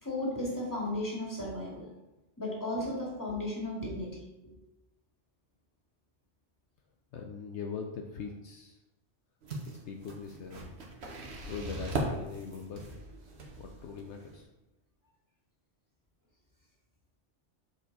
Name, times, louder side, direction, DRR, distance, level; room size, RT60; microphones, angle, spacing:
voice 1, 0.0-1.9 2.4-4.1 4.4-4.5, left 1 dB, 15° left, -5 dB, 2.2 m, -34 dB
voice 2, 7.1-8.8 9.7-10.7 11.3-12.8 13.6-14.5, left 5 dB, 70° left, 3 dB, 0.9 m, -41 dB
sound 1, 9.4-14.4, right 2 dB, 60° right, 1.4 m, -39 dB
7.1 x 4.7 x 4.1 m, 0.97 s
omnidirectional pair, 1.3 m